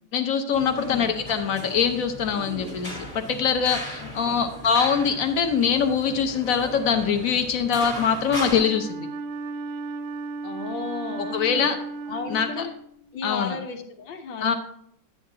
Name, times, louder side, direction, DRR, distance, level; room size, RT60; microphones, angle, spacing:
voice 1, 0.1-9.1 11.2-11.8 12.3-12.7 13.2-13.6 14.4-14.5, left 6 dB, 60° left, 7 dB, 1.0 m, -23 dB
sound 1, 0.5-8.6, left 1 dB, 30° left, 1.4 m, -37 dB
voice 2, 0.8-1.2 4.0-4.4 10.4-11.7 12.1-12.7 13.1-14.5, left 4 dB, 90° left, 4 dB, 1.7 m, -34 dB
Wind instrument woodwind instrument, 8.5-13.2, right 3 dB, 80° right, 1.3 m, -35 dB
10.5 x 8.6 x 2.7 m, 0.70 s
omnidirectional pair, 2.0 m